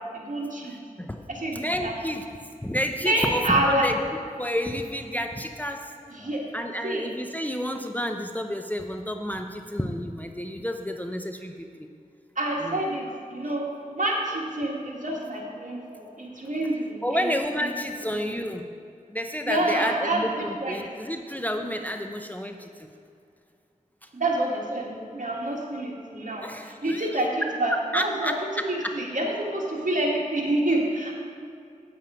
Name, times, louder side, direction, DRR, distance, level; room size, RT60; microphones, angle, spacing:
voice 1, 0.1-0.7 1.3-1.9 3.0-3.9 6.1-6.4 6.8-7.0 12.4-13.6 13.9-17.3 19.5-20.8 24.1-28.3 28.7-31.1, right 1 dB, 60° right, -2 dB, 1.8 m, -27 dB
voice 2, 1.5-2.3 2.6-4.0 4.4-5.9 6.2-11.9 12.6-12.8 17.0-18.6 19.1-22.9 26.4-27.1 27.4-29.0, equal, 10° left, 5 dB, 0.6 m, -30 dB
8.7 x 7.6 x 4.9 m, 2.4 s
wide cardioid pair, 45°, 15 cm